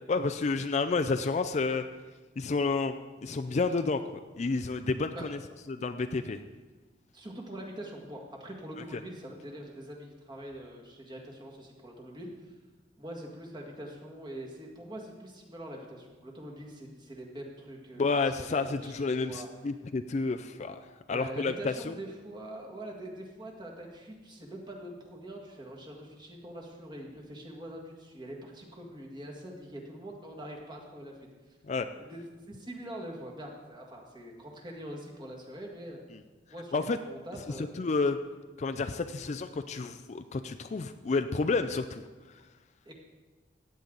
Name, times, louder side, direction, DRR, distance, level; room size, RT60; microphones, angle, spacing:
voice 1, 0.1-1.8 2.4-2.9 3.2-5.4 5.7-6.4 8.9-9.0 18.0-20.8 21.1-21.9 31.6-31.9 36.7-37.0 37.6-38.2 38.6-42.0 42.3-42.4, left 4 dB, 40° left, 8 dB, 0.4 m, -30 dB
voice 2, 7.1-12.5 13.0-19.5 21.1-31.2 32.0-36.0 36.5-37.8 42.9-43.0, right 1 dB, 25° right, -1 dB, 1.9 m, -44 dB
15.0 x 9.3 x 3.9 m, 1.3 s
head